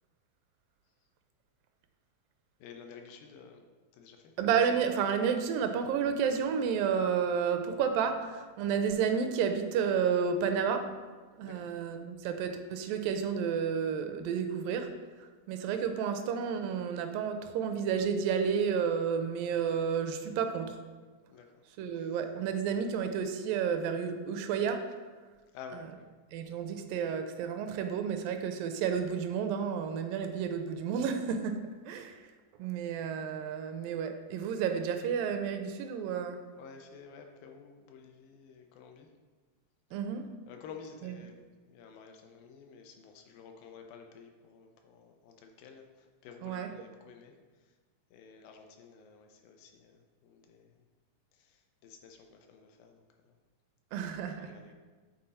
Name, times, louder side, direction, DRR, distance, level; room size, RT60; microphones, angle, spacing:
voice 1, 2.6-3.6 3.9-4.3 11.4-11.7 21.3-21.5 25.5-26.1 36.6-39.1 40.5-41.4 41.7-45.9 46.2-47.3 48.1-50.7 51.8-53.0 54.2-54.7, left 6 dB, 85° left, 4 dB, 2.4 m, -51 dB
voice 2, 4.4-10.9 11.4-14.9 15.2-20.8 21.8-24.8 25.7-25.8 26.3-32.2 32.6-36.4 39.9-40.3 41.0-41.1 46.4-46.7 53.9-54.5, right 7 dB, 85° right, 7 dB, 2.2 m, -31 dB
7.7 x 4.1 x 4.2 m, 1.4 s
omnidirectional pair, 4.0 m